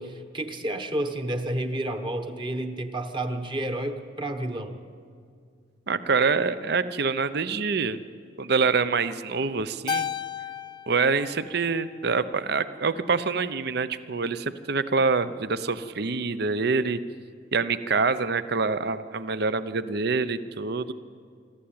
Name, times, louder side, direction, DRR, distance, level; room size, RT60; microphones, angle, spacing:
voice 1, 0.0-4.8, right 1 dB, 25° right, 7 dB, 1.2 m, -30 dB
voice 2, 5.9-8.0 8.4-10.1 10.9-17.0 17.5-20.9, right 4 dB, 60° right, 14 dB, 0.7 m, -26 dB
Keyboard (musical), 9.9-12.4, left 7 dB, 25° left, 0.4 m, -34 dB
25.5 x 13.0 x 8.8 m, 2.2 s
head